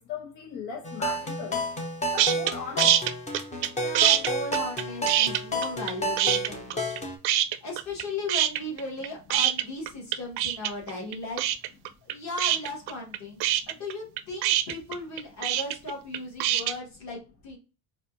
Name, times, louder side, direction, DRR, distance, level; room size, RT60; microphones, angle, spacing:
voice 1, 0.1-1.6 2.1-3.0, left 5 dB, 75° left, 1.0 m, -37 dB
sound 1, 0.9-7.2, equal, 15° left, 0.6 m, -31 dB
sound 2, 2.2-2.5 2.8-3.7 3.9-5.9 6.2-7.0 7.2-8.0 8.3-16.7, right 12 dB, 65° right, 0.5 m, -24 dB
voice 2, 3.8-7.1 7.6-11.5 12.0-17.6, left 2 dB, 40° left, 1.9 m, -37 dB
4.1 x 2.5 x 2.6 m
cardioid pair, 150°, 42 cm